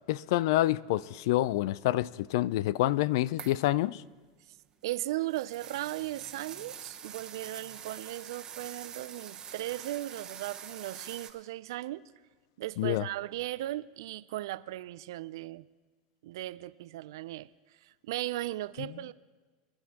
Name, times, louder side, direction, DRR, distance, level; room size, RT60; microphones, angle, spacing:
voice 1, 0.1-4.0 12.8-13.1, left 15 dB, 70° left, 0.3 m, -27 dB
sound 1, 3.4-3.7 4.6-11.3, right 8 dB, 30° right, 1.1 m, -45 dB
voice 2, 4.8-12.0 12.6-15.7 16.2-17.5 17.8-19.1, right 16 dB, 75° right, 0.4 m, -37 dB
22.5 x 10.5 x 2.9 m
hypercardioid pair, 105°, 2 cm